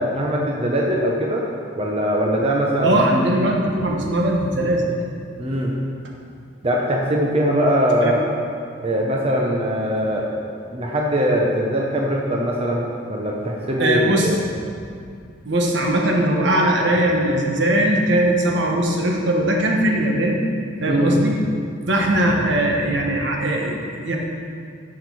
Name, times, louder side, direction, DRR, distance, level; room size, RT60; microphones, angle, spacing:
voice 1, 0.0-1.5 1.7-3.0 5.4-5.7 6.6-8.3 8.8-10.3 10.7-14.4 20.9-21.2, equal, 30° right, -2 dB, 0.8 m, -21 dB
voice 2, 2.8-4.9 8.0-8.1 13.8-14.3 15.4-20.4 20.8-21.4 21.9-24.2, right 1 dB, 65° right, 0 dB, 1.3 m, -20 dB
11.0 x 6.5 x 4.8 m, 2.3 s
head